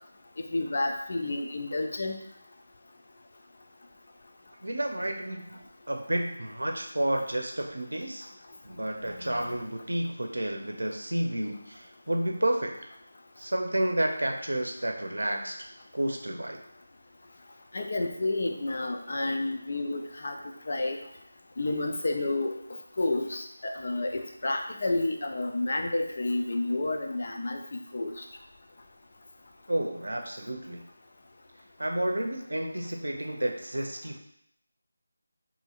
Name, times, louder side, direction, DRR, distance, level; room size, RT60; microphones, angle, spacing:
voice 1, 0.5-2.2 9.1-9.6 17.7-20.4 20.7-21.0 21.6-22.6 23.0-28.1, left 2 dB, 50° left, 4 dB, 0.5 m, -30 dB
voice 2, 4.6-5.6 5.9-8.3 8.6-12.7 13.4-15.5 15.9-16.6 29.7-30.8 31.8-34.2, right 1 dB, 75° right, 2 dB, 0.6 m, -30 dB
4.1 x 2.8 x 2.4 m, 0.73 s
figure-of-eight pair, 160°, 0 cm